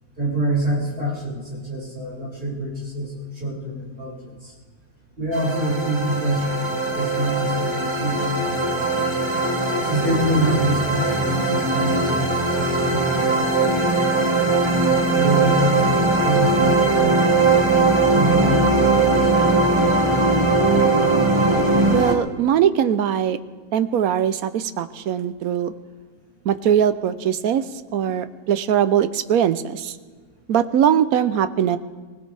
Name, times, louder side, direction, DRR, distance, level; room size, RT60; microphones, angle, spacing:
voice 1, 0.2-4.1 4.4-4.5 5.2-9.1 9.8-13.1 13.4-14.5 15.1-17.2 18.1-18.8, right 1 dB, 40° right, -6 dB, 6.0 m, -26 dB
sound 1, 5.3-22.1, right 3 dB, 20° right, 1.4 m, -20 dB
voice 2, 21.9-23.4 23.7-25.7 26.5-27.6 27.9-29.9 30.5-31.8, right 9 dB, 85° right, 12 dB, 1.2 m, -21 dB
24.5 x 16.5 x 3.4 m, 1.5 s
omnidirectional pair, 1.5 m